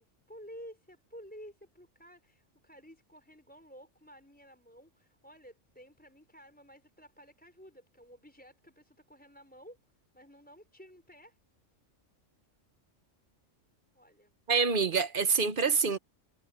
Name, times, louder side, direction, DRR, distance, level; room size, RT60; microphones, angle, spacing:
voice 1, 0.0-9.8 10.1-11.4 13.9-14.4, equal, 5° left, 5.3 m, -53 dB
voice 2, 14.5-16.0, right 5 dB, 45° right, 1.1 m, -26 dB
omnidirectional pair, 1.3 m